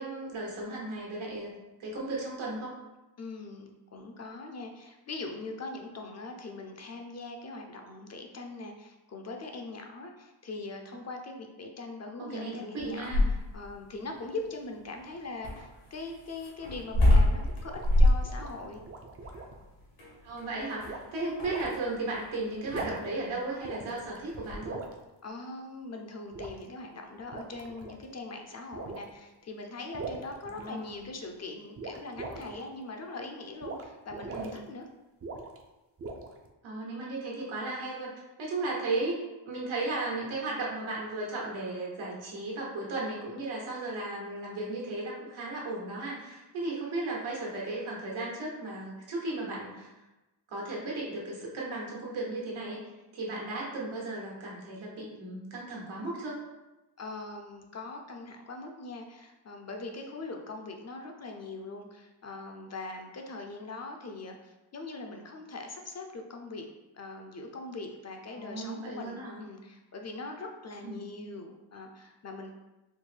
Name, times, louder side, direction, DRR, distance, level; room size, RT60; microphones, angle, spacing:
voice 1, 0.0-1.5 1.8-2.7 12.2-13.3 20.2-24.8 30.5-31.0 34.3-34.6 36.6-38.1 38.4-39.2 39.4-49.9 50.5-52.8 53.1-56.4 68.3-69.4 70.8-71.0, right 2 dB, 80° right, -3 dB, 1.3 m, -35 dB
voice 2, 3.2-18.8 25.2-34.9 57.0-66.7 66.9-72.5, left 3 dB, 35° left, 3 dB, 0.4 m, -41 dB
sound 1, 12.8-13.7 15.4-22.3 22.6-23.0 24.3-24.6, left 1 dB, 85° left, 1.3 m, -26 dB
sound 2, 17.3-19.6 20.9-21.1 21.5-21.7 22.6-23.2 23.6-24.2 24.6-24.9 26.3-26.6 27.2-28.0 28.7-29.1 29.9-31.1 31.8-32.6 33.6-33.8 34.1-34.6 35.2-35.6 36.0-36.5, right 3 dB, 30° right, 0.4 m, -41 dB
4.3 x 2.1 x 3.2 m, 1.0 s
cardioid pair, 95°, 47 cm